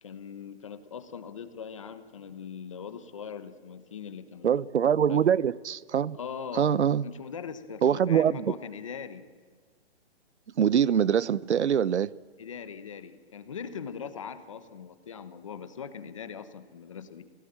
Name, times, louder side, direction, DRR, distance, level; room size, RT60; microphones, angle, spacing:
voice 1, 0.0-4.7 5.1-5.3 6.1-6.7 7.0-9.3 12.4-17.2, left 7 dB, 30° left, 1.1 m, -41 dB
voice 2, 4.4-6.2 6.5-7.0 7.8-8.5 10.6-12.1, right 8 dB, 80° right, 0.8 m, -24 dB
29.0 x 17.5 x 8.8 m
hypercardioid pair, 175°, 34 cm